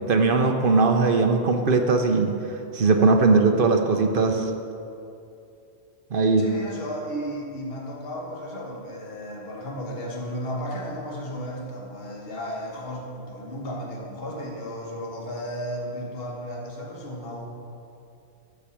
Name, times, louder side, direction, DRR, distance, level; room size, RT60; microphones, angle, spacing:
voice 1, 0.1-2.3 2.7-4.5 6.1-6.4, right 3 dB, 50° right, 5 dB, 0.9 m, -19 dB
voice 2, 6.4-17.5, equal, 55° left, -2 dB, 1.6 m, -34 dB
13.0 x 4.7 x 7.2 m, 2.6 s
omnidirectional pair, 1.2 m